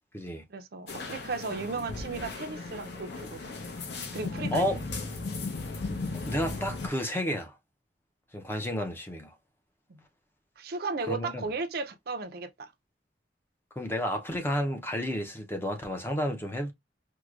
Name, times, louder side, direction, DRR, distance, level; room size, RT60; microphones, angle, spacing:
voice 1, 0.5-3.4 4.1-4.7 9.9-10.0 10.6-12.7, right 3 dB, 55° right, 0.5 m, -35 dB
sound 1, 0.9-6.9, left 3 dB, 65° left, 0.8 m, -36 dB
voice 2, 6.3-7.5 8.3-9.3 11.1-11.4 13.8-16.7, equal, 15° left, 0.5 m, -31 dB
4.6 x 2.1 x 2.4 m
head